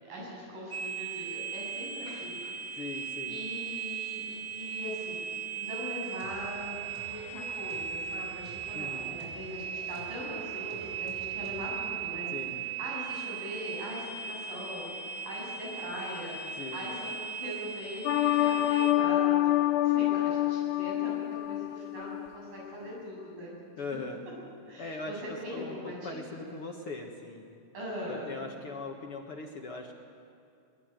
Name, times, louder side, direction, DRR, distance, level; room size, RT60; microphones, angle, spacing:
voice 1, 0.0-5.3 5.5-12.3 12.8-23.5 24.7-26.5 27.7-28.3, equal, 65° right, -3 dB, 9.3 m, -41 dB
sound 1, 0.7-18.9, right 7 dB, 40° right, 0.9 m, -38 dB
voice 2, 2.8-3.4 8.7-9.2 12.3-12.7 16.6-16.9 23.8-24.2 24.8-27.5 28.1-29.9, left 3 dB, 50° left, 2 dB, 1.8 m, -40 dB
sound 2, 6.1-12.2, right 1 dB, 5° right, 6.8 m, -52 dB
sound 3, 18.1-22.3 22.6-22.7, left 14 dB, 85° left, 2.8 m, -26 dB
22.0 x 21.5 x 9.2 m, 2.6 s
omnidirectional pair, 4.3 m